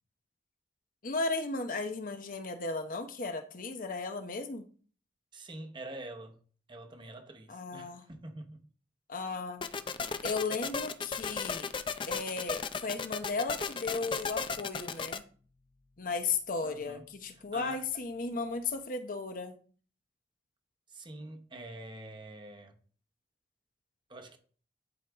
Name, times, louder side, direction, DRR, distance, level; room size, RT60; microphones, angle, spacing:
voice 1, 1.0-4.7 7.5-8.0 9.1-9.6 10.2-11.7 12.1-15.2 16.0-19.6, left 4 dB, 50° left, 0.8 m, -35 dB
voice 2, 5.3-6.4 6.7-8.7 16.6-17.0 17.3-17.8 20.9-22.8 24.1-24.4, right 2 dB, 25° right, 0.9 m, -46 dB
sound 1, 9.6-15.2, left 5 dB, 30° left, 0.4 m, -35 dB
10.5 x 4.6 x 3.5 m
head